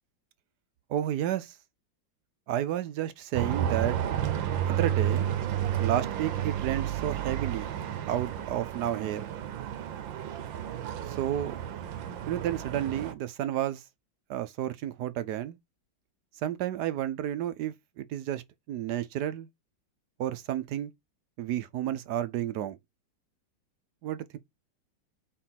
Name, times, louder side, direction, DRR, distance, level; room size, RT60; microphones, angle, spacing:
voice 1, 0.9-1.6 2.5-4.0 4.7-5.3 5.8-7.7 8.1-9.3 11.2-11.6 12.3-13.8 14.3-15.6 16.4-18.4 18.7-19.5 20.2-20.9 21.4-22.8 24.0-24.4, right 11 dB, 70° right, 1.1 m, -31 dB
sound 1, 3.3-13.1, right 10 dB, 90° right, 1.6 m, -31 dB
4.5 x 4.4 x 5.7 m
omnidirectional pair, 2.0 m